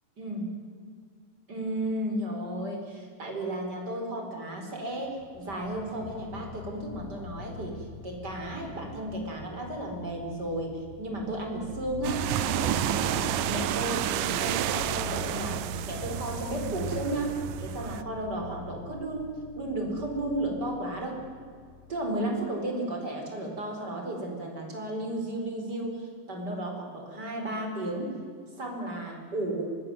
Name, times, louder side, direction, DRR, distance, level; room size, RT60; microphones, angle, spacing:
voice 1, 0.2-0.5 1.5-21.3 21.9-28.2 28.6-29.8, right 1 dB, 30° right, 2 dB, 4.8 m, -34 dB
sound 1, 5.1-22.4, left 6 dB, 80° left, 2.9 m, -43 dB
sound 2, 12.0-18.0, right 12 dB, 85° right, 2.5 m, -30 dB
24.0 x 21.0 x 7.8 m, 2.1 s
omnidirectional pair, 3.7 m